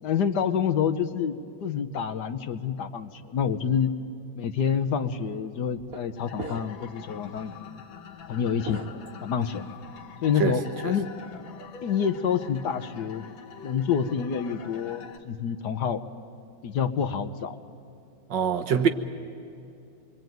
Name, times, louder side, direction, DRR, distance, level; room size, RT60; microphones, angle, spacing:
voice 1, 0.0-3.9 4.4-7.8 8.3-8.8 9.2-9.6 10.2-11.1 11.8-13.2 13.6-16.0 16.6-17.6, left 7 dB, 65° left, 1.4 m, -27 dB
sound 1, 4.7-4.9 5.8-6.1 6.4-6.9 7.3-7.5 8.6-9.7, right 3 dB, 50° right, 1.9 m, -40 dB
sound 2, 6.2-15.2, left 6 dB, 80° left, 2.1 m, -45 dB
voice 2, 10.4-10.9 18.3-18.9, right 6 dB, 65° right, 1.7 m, -25 dB
26.5 x 22.0 x 9.3 m
omnidirectional pair, 2.1 m